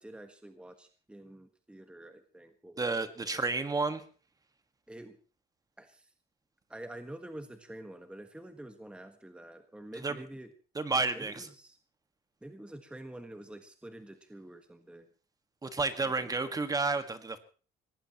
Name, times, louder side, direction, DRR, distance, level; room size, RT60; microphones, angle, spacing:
voice 1, 0.0-3.5 4.9-5.2 5.8-6.1 6.7-10.5 11.1-11.8 12.4-15.1 16.0-16.6, right 1 dB, 5° right, 7 dB, 1.5 m, -48 dB
voice 2, 2.8-4.0 10.0-10.2 10.8-11.5 15.6-17.4, right 3 dB, 20° right, 10 dB, 1.8 m, -31 dB
22.0 x 18.5 x 3.1 m, 0.38 s
cardioid pair, 110°, 17 cm